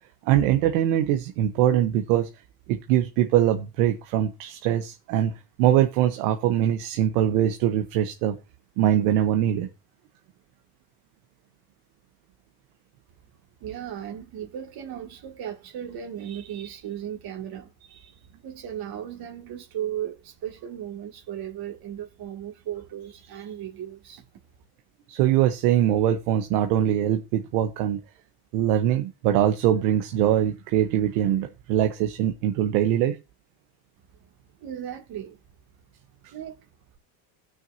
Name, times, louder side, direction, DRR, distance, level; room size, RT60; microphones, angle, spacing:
voice 1, 0.3-2.3 2.7-5.3 5.6-8.4 8.8-9.7 25.1-28.0 28.5-33.1, right 11 dB, 85° right, 1.1 m, -22 dB
voice 2, 13.6-24.3 34.6-35.4 36.3-36.6, right 10 dB, 55° right, 2.3 m, -36 dB
16.5 x 6.3 x 2.7 m
supercardioid pair, 110°, 45 cm